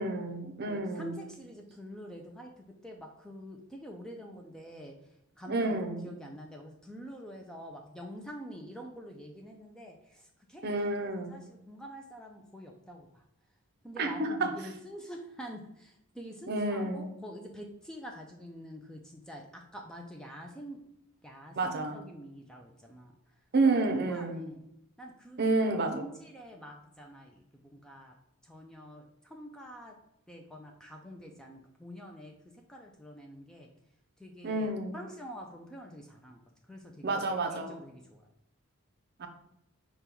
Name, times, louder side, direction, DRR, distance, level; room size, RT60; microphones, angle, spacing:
voice 1, 0.0-1.2 5.5-6.1 10.6-11.4 14.0-14.5 16.5-17.1 21.6-22.0 23.5-24.5 25.4-26.1 34.4-35.0 37.0-37.8 39.2-39.3, right 2 dB, 45° right, 5 dB, 0.5 m, -30 dB
voice 2, 0.6-13.2 13.8-20.8 21.2-23.1 23.6-24.6 25.0-25.5 25.9-28.1 28.4-29.9 30.3-32.4 32.7-33.7 34.2-36.4 36.7-37.2 37.5-38.3, equal, 5° left, 1 dB, 0.3 m, -46 dB
5.2 x 2.3 x 4.4 m, 0.81 s
head